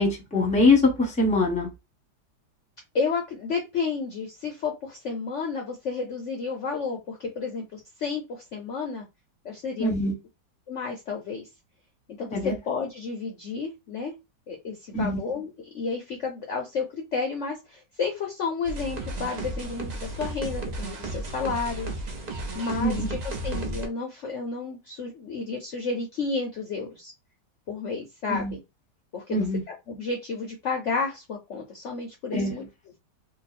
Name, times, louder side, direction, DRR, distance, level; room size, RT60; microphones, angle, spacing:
voice 1, 0.0-1.7 9.8-10.1 12.3-12.5 14.9-15.2 22.8-23.1 28.3-28.5 29.3-29.6 32.3-32.5, left 2 dB, 5° left, 0.9 m, -23 dB
voice 2, 2.9-9.1 9.4-9.9 10.7-11.5 12.1-12.4 12.7-14.1 14.5-15.5 15.7-21.9 22.5-27.1 27.7-28.6 29.1-29.4 29.9-32.6, left 4 dB, 60° left, 0.8 m, -31 dB
sound 1, 18.6-23.9, right 2 dB, 55° right, 0.4 m, -33 dB
2.9 x 2.4 x 4.1 m
omnidirectional pair, 1.8 m